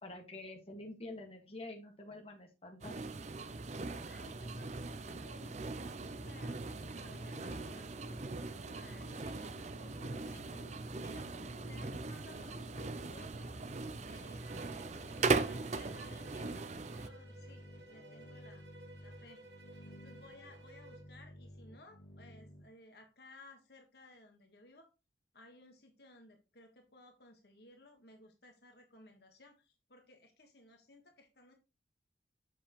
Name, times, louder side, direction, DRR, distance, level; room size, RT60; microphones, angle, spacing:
voice 1, 0.0-3.1, left 2 dB, 30° left, 1 dB, 1.8 m, -47 dB
sound 1, 2.8-17.1, right 3 dB, 40° right, 0.6 m, -39 dB
voice 2, 4.0-8.2 8.7-9.5 9.8-11.3 11.6-13.5 14.0-17.6 17.9-18.6 19.0-19.4 19.7-24.9 25.3-31.5, left 2 dB, 60° left, 3 dB, 1.5 m, -59 dB
sound 2, 4.2-22.6, left 1 dB, 85° left, 2.0 m, -56 dB
Bowed string instrument, 14.4-21.1, right 2 dB, 65° right, 1.9 m, -57 dB
7.6 x 7.1 x 3.1 m, 0.27 s
head